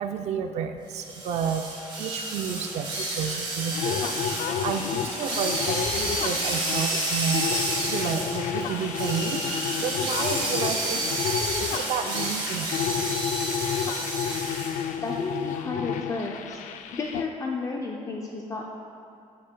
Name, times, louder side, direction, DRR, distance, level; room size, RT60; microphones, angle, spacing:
voice 1, 0.0-1.7 2.0-4.1 4.6-11.0 11.6-12.7 13.0-13.1, right 7 dB, 60° right, 6 dB, 0.4 m, -31 dB
sound 1, 0.9-14.9, right 2 dB, 40° right, 1.6 m, -30 dB
sound 2, 3.7-17.3, left 8 dB, 90° left, 0.4 m, -31 dB
voice 2, 15.0-16.6 16.9-18.7, left 3 dB, 25° left, 0 dB, 0.4 m, -32 dB
12.0 x 6.4 x 2.2 m, 2.6 s
cardioid pair, 155°, 13 cm